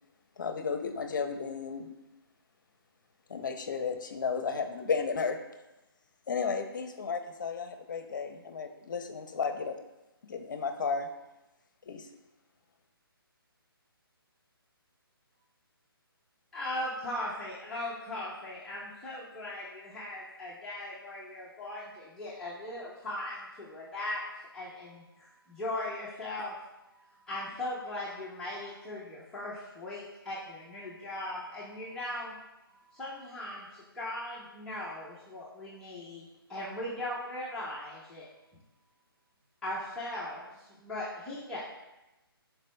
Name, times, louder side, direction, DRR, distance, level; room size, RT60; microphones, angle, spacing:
voice 1, 0.4-1.9 3.3-5.4 6.3-9.8 10.2-11.1 11.9-12.1, left 5 dB, 55° left, 7 dB, 0.7 m, -33 dB
voice 2, 16.5-24.2 24.5-26.5 27.3-32.3 32.9-38.3 39.6-41.6, left 1 dB, 5° left, -10 dB, 0.7 m, -39 dB
voice 3, 25.2-25.6 26.9-27.2 28.4-28.7 31.8-31.9 32.7-33.0 40.8-40.9, right 3 dB, 30° right, -2 dB, 1.5 m, -64 dB
11.5 x 4.6 x 2.2 m, 0.99 s
hypercardioid pair, 160°, 13 cm